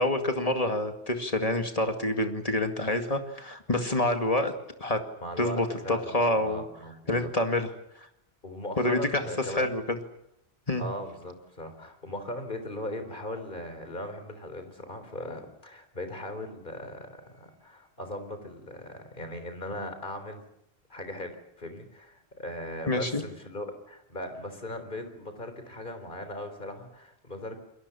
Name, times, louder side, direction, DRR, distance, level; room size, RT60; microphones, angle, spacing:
voice 1, 0.0-4.5 4.8-5.0 5.4-6.6 7.1-7.7 8.8-9.2 9.5-9.8 10.7-10.8 22.9-23.2, left 1 dB, 35° left, 6 dB, 2.3 m, -27 dB
voice 2, 5.2-7.3 8.4-9.8 10.8-20.4 20.9-27.6, left 1 dB, 50° left, 8 dB, 4.1 m, -39 dB
28.5 x 22.0 x 7.1 m, 0.79 s
omnidirectional pair, 1.1 m